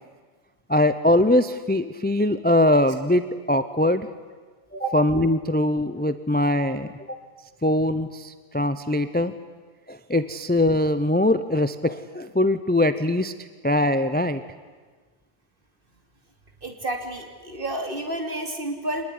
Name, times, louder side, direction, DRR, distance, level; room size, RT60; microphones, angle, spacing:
voice 1, 0.7-4.1 4.9-7.2 7.6-9.3 9.9-13.3 13.6-14.4, left 1 dB, 10° left, 12 dB, 0.7 m, -22 dB
voice 2, 16.6-19.0, right 1 dB, 50° right, 3 dB, 3.1 m, -30 dB
25.5 x 20.0 x 9.8 m, 1.4 s
omnidirectional pair, 1.2 m